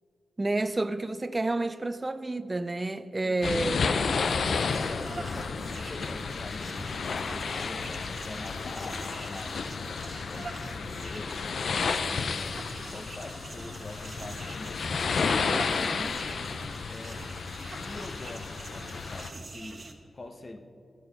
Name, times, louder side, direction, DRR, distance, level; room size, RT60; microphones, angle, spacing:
voice 1, 0.4-3.8, right 2 dB, 30° right, 0.5 m, -29 dB
voice 2, 3.2-3.8 4.2-11.4 12.0-12.6 12.9-14.7 15.2-16.2 16.9-17.2 17.6-20.6, left 2 dB, 45° left, 1.1 m, -44 dB
sound 1, 3.4-19.3, left 5 dB, 70° left, 0.5 m, -32 dB
sound 2, 3.8-19.9, right 2 dB, 45° right, 1.3 m, -45 dB
15.5 x 6.8 x 5.4 m
cardioid pair, 60°, 0 cm